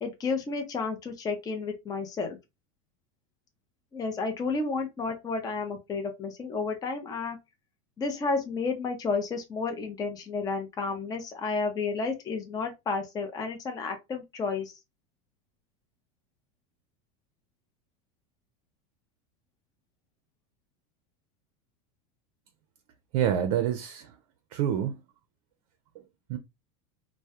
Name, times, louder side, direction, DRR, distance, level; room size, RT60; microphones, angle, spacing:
voice 1, 0.0-2.4 3.9-7.4 8.0-14.8, left 4 dB, 20° left, 0.5 m, -31 dB
voice 2, 23.1-24.1 24.5-25.0 26.3-26.4, right 9 dB, 65° right, 0.5 m, -27 dB
2.2 x 2.1 x 2.7 m
supercardioid pair, 120°, 18 cm